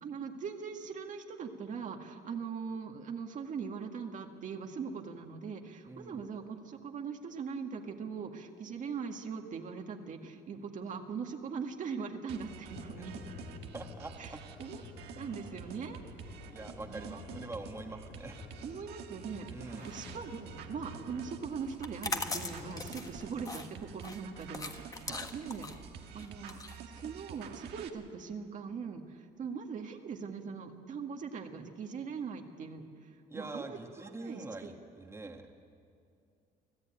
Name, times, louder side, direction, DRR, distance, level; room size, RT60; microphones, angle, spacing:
voice 1, 0.0-13.2 14.2-14.8 15.2-16.0 16.9-17.5 18.6-25.7 26.1-32.8 33.3-34.7, right 6 dB, 50° right, 3 dB, 1.9 m, -41 dB
voice 2, 5.8-6.2 13.0-13.1 13.7-14.4 16.5-18.4 19.5-19.9 25.1-25.3 33.3-35.4, right 2 dB, 15° right, 3 dB, 1.7 m, -44 dB
sound 1, 12.3-27.9, right 8 dB, 75° right, 1.8 m, -48 dB
sound 2, 12.7-23.3, left 5 dB, 75° left, 2.8 m, -51 dB
sound 3, 21.7-27.5, left 3 dB, 20° left, 1.5 m, -40 dB
25.0 x 15.5 x 9.0 m, 2.5 s
cardioid pair, 110°, 17 cm